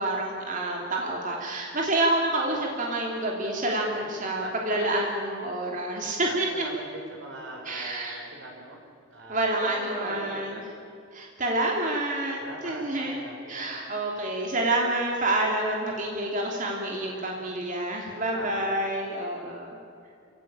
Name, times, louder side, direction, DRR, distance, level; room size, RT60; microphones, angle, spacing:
voice 1, 0.0-6.7 7.6-8.2 9.3-10.6 11.1-19.7, right 1 dB, 40° right, -1 dB, 3.0 m, -28 dB
voice 2, 3.9-5.0 6.2-8.8 9.1-10.7 12.4-13.6 17.1-17.4 18.2-18.7, right 1 dB, 70° right, 1 dB, 5.6 m, -42 dB
28.5 x 16.0 x 8.9 m, 2.4 s
head